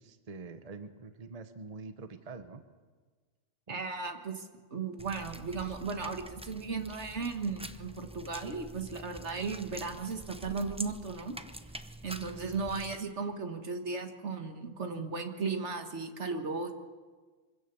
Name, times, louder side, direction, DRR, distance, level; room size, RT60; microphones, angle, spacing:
voice 1, 0.0-2.6 3.7-3.8, right 4 dB, 35° right, 9 dB, 1.0 m, -45 dB
voice 2, 3.7-11.3 12.0-16.7, right 4 dB, 70° right, 6 dB, 1.8 m, -36 dB
sound 1, 5.0-13.0, right 1 dB, 5° right, 0.5 m, -46 dB
24.5 x 16.5 x 6.9 m, 1.4 s
omnidirectional pair, 1.2 m